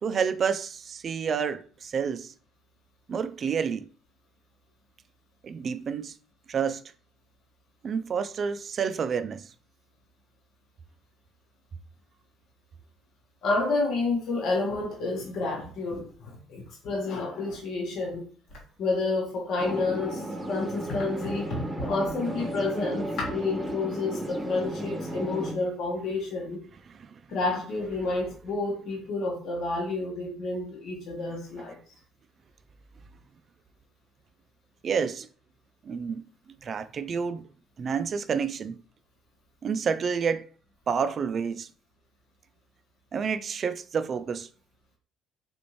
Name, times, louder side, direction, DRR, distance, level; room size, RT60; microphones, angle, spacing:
voice 1, 0.0-2.3 3.1-3.9 5.4-6.2 6.5-6.8 7.8-9.5 27.0-27.2 34.8-35.3 35.8-36.2 36.6-37.4 37.8-38.8 39.6-40.5 40.9-41.7 43.1-44.5, right 6 dB, 45° right, 0.3 m, -29 dB
voice 2, 13.4-18.2 18.8-26.6 27.3-31.8, left 3 dB, 70° left, 1.1 m, -30 dB
sound 1, 19.6-25.5, right 1 dB, 15° right, 0.8 m, -34 dB
4.1 x 2.6 x 3.0 m
supercardioid pair, 85°, 0 cm